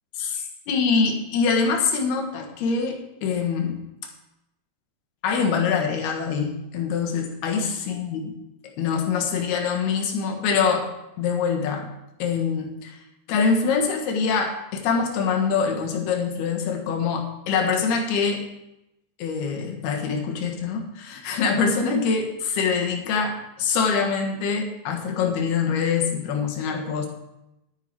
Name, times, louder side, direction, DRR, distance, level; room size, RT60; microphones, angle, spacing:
voice 1, 0.2-3.8 5.2-8.2 8.8-10.9 11.2-11.9 12.2-13.0 13.3-18.5 19.2-27.1, left 5 dB, 65° left, 2 dB, 3.1 m, -24 dB
11.5 x 9.3 x 4.7 m, 0.88 s
omnidirectional pair, 5.3 m